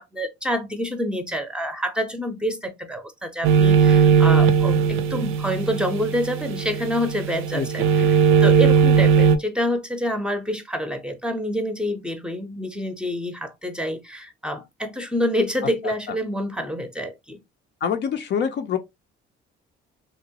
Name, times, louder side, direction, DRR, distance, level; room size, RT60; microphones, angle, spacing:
voice 1, 0.0-17.4, equal, 5° right, 0.6 m, -27 dB
sound 1, 3.4-9.4, right 6 dB, 75° right, 0.5 m, -18 dB
voice 2, 17.8-18.8, left 7 dB, 55° left, 0.5 m, -25 dB
2.9 x 2.1 x 2.7 m
cardioid pair, 85°, 21 cm